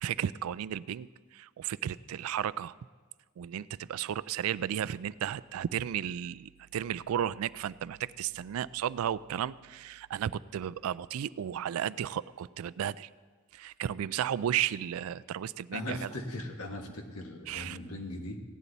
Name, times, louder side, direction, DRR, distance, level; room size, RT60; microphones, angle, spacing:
voice 1, 0.0-2.7 3.4-13.1 13.5-16.1 17.5-17.8, right 10 dB, 75° right, 17 dB, 0.3 m, -34 dB
voice 2, 15.7-18.4, left 1 dB, 90° left, 3 dB, 1.5 m, -39 dB
16.5 x 9.9 x 4.0 m, 1.4 s
head